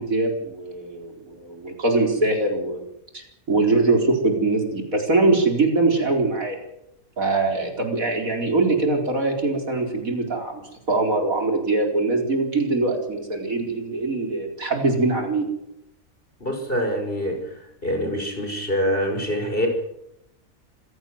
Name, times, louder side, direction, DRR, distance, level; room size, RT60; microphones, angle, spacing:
voice 1, 0.0-2.8 3.1-6.6 7.2-15.5, right 3 dB, 75° right, 3 dB, 4.9 m, -22 dB
voice 2, 16.4-17.5 17.8-19.7, equal, 40° left, 4 dB, 6.0 m, -25 dB
26.5 x 16.5 x 7.9 m, 0.81 s
omnidirectional pair, 1.5 m